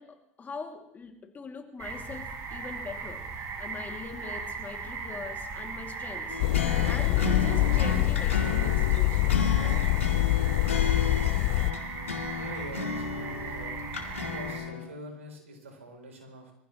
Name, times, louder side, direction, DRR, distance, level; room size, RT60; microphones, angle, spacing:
voice 1, 0.0-6.4 6.8-9.6, left 5 dB, 25° left, 3 dB, 2.7 m, -42 dB
sound 1, 1.8-14.6, right 4 dB, 45° right, 5.5 m, -38 dB
sound 2, 6.3-14.9, left 4 dB, 90° left, 2.0 m, -34 dB
sound 3, 6.4-11.7, left 19 dB, 60° left, 0.5 m, -25 dB
voice 2, 12.4-13.8 14.1-16.5, right 1 dB, 90° right, 2 dB, 3.8 m, -44 dB
24.0 x 15.5 x 3.2 m, 0.75 s
hypercardioid pair, 90°, 7 cm